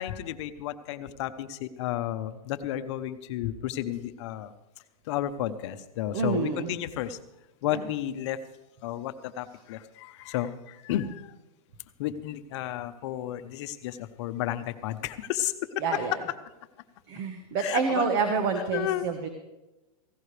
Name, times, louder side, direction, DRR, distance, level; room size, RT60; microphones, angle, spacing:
voice 1, 0.0-4.5 5.1-7.2 7.6-8.4 8.8-11.2 12.0-16.0 17.6-18.1 18.7-19.1, left 12 dB, 50° left, 10 dB, 1.0 m, -32 dB
voice 2, 6.1-6.7 7.7-7.8 15.8-16.2 17.1-19.3, right 5 dB, 45° right, 6 dB, 1.4 m, -28 dB
17.5 x 16.0 x 3.4 m, 1.0 s
hypercardioid pair, 145°, 19 cm